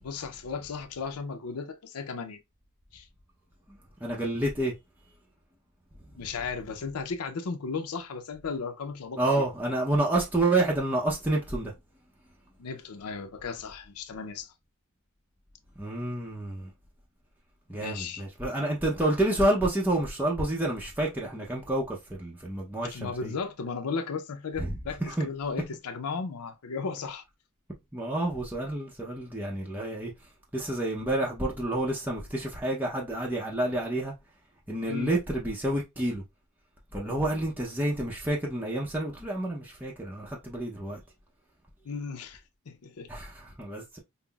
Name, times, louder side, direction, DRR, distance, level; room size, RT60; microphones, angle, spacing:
voice 1, 0.0-2.4 2.9-3.1 6.1-9.4 12.6-14.5 17.7-18.2 22.9-27.2 34.9-35.2 41.8-43.1, left 5 dB, 80° left, 0.5 m, -35 dB
voice 2, 3.7-4.7 9.2-11.7 15.8-16.7 17.7-23.3 24.6-24.7 25.0-25.3 27.9-30.1 30.5-34.1 34.7-36.2 36.9-41.0 43.1-44.0, right 1 dB, 10° right, 0.6 m, -29 dB
5.5 x 2.0 x 2.3 m
head